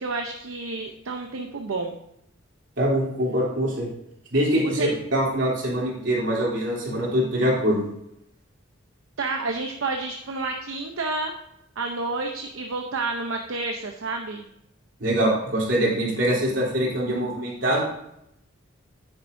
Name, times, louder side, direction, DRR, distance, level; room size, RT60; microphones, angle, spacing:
voice 1, 0.0-2.0 4.6-4.9 9.2-11.3 11.8-14.5, right 3 dB, 80° right, 2 dB, 0.7 m, -30 dB
voice 2, 2.8-3.9 4.3-7.8 15.0-17.9, equal, 65° right, -4 dB, 3.2 m, -23 dB
9.7 x 9.0 x 2.6 m, 0.78 s
head